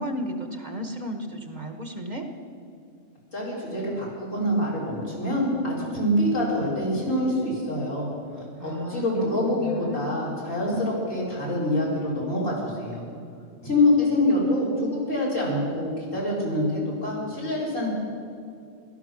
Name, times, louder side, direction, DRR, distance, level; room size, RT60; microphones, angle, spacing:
voice 1, 0.0-2.2 8.6-10.2, equal, 35° right, 4 dB, 1.2 m, -34 dB
voice 2, 3.3-8.1 8.4-13.0 13.6-17.9, left 1 dB, 90° left, -6 dB, 4.9 m, -25 dB
16.5 x 12.5 x 6.1 m, 2.4 s
omnidirectional pair, 1.3 m